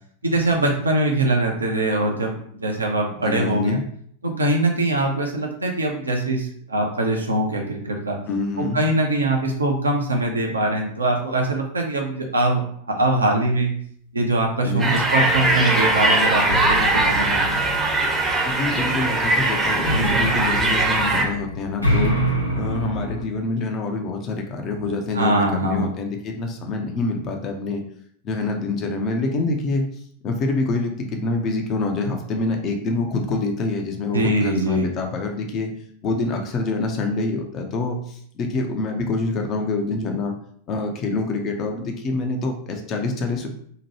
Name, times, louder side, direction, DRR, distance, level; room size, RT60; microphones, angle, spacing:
voice 1, 0.2-3.8 4.2-8.2 8.6-12.6 12.9-13.7 14.1-17.5 25.1-25.9 34.1-34.9, right 1 dB, 75° right, 1 dB, 0.6 m, -22 dB
voice 2, 3.2-3.8 8.3-8.8 14.6-15.0 18.5-22.2 22.5-27.8 28.2-29.9 30.2-35.7 36.0-40.4 40.7-43.5, left 3 dB, 35° left, 3 dB, 0.5 m, -26 dB
sound 1, 14.8-21.2, right 2 dB, 10° right, 0.6 m, -20 dB
sound 2, 16.5-18.4 19.9-23.2, equal, 90° left, 0.7 m, -25 dB
2.8 x 2.2 x 2.9 m, 0.62 s
figure-of-eight pair, 90°, 0 cm